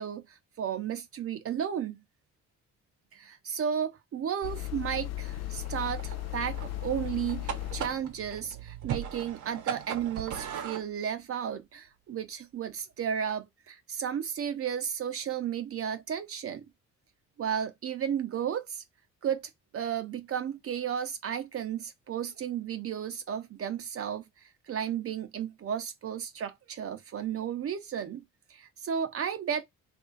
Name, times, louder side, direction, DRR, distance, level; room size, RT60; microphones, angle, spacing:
voice 1, 0.0-2.0 3.1-16.6 17.4-18.8 19.2-28.2 28.5-29.6, right 8 dB, 50° right, 0.6 m, -33 dB
sound 1, 4.4-8.2, left 15 dB, 60° left, 0.4 m, -36 dB
sound 2, 5.6-10.9, right 9 dB, 70° right, 1.0 m, -39 dB
2.9 x 2.5 x 3.8 m
cardioid pair, 90°, 30 cm